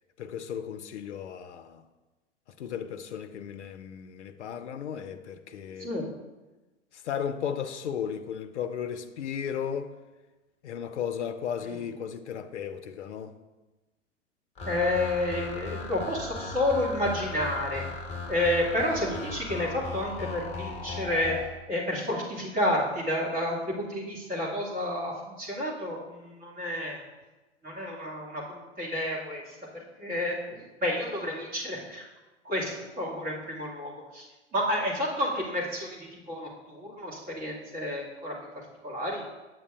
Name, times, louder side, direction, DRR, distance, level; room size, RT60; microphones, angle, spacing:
voice 1, 0.2-1.8 2.6-6.1 6.9-9.9 10.6-13.4, left 8 dB, 70° left, 0.5 m, -35 dB
sound 1, 14.6-21.5, left 3 dB, 20° left, 1.0 m, -37 dB
voice 2, 14.7-17.8 18.3-21.4 21.7-27.0 27.6-29.4 29.7-32.0 32.5-34.2 34.5-38.3 38.8-39.2, left 1 dB, 25° right, 2.0 m, -30 dB
8.3 x 7.4 x 2.4 m
figure-of-eight pair, 95°, 36 cm